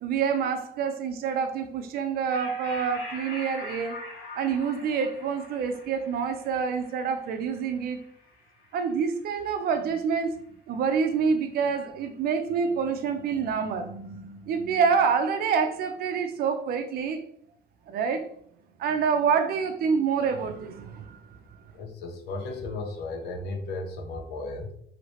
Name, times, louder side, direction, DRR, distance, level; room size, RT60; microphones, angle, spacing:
voice 1, 0.0-4.0 4.4-8.0 8.7-10.3 10.7-17.2 17.9-18.2 18.8-21.2, right 6 dB, 65° right, 7 dB, 0.5 m, -27 dB
sound 1, 2.3-9.2, left 2 dB, 60° left, 1.1 m, -43 dB
voice 2, 21.7-24.7, left 2 dB, 75° left, 3 dB, 0.7 m, -35 dB
2.8 x 2.7 x 3.1 m, 0.66 s
cardioid pair, 110°, 17 cm